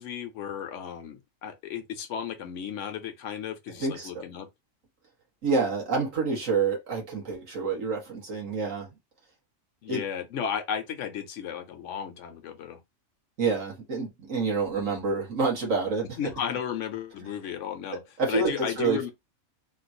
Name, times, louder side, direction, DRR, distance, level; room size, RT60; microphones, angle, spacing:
voice 1, 0.0-4.5 9.8-12.8 16.2-18.0 18.3-19.1, left 8 dB, 70° left, 0.9 m, -34 dB
voice 2, 3.8-4.3 5.4-8.9 9.9-10.0 13.4-16.2 17.9-19.1, right 4 dB, 70° right, 1.8 m, -28 dB
3.7 x 2.3 x 2.6 m
omnidirectional pair, 1.4 m